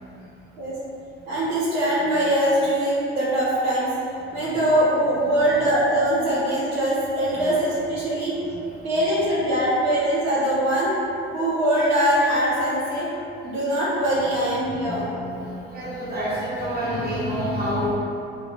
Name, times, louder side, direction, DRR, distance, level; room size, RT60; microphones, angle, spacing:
voice 1, 1.3-3.9 4.3-8.4 8.8-10.9 11.3-13.1 13.4-15.0, right 1 dB, 65° right, -9 dB, 1.3 m, -22 dB
voice 2, 4.3-4.6 5.5-5.6 6.1-6.2 7.3-7.4 8.0-8.1 8.5-8.6 8.8-8.9 14.7-17.9, equal, 35° right, -8 dB, 0.9 m, -29 dB
3.5 x 2.6 x 3.0 m, 2.7 s
hypercardioid pair, 60°, 29 cm